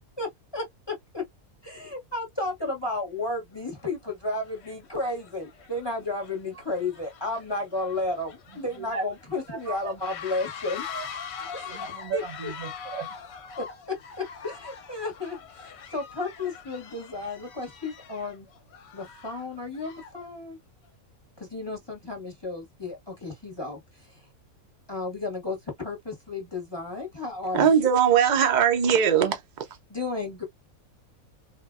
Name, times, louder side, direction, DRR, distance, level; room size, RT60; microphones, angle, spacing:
voice 1, 0.2-1.2 1.6-10.8 11.5-11.8 12.1-12.2 13.6-18.5 18.9-20.6 21.4-24.1 24.9-27.9 29.9-30.4, left 2 dB, 20° left, 0.8 m, -33 dB
sound 1, 3.7-3.9 4.3-20.3, left 7 dB, 60° left, 0.8 m, -43 dB
voice 2, 9.5-9.9 10.9-11.0 11.6-13.1, right 5 dB, 90° right, 1.4 m, -35 dB
voice 3, 27.5-29.4, right 8 dB, 60° right, 0.5 m, -20 dB
3.6 x 2.1 x 2.3 m
omnidirectional pair, 1.5 m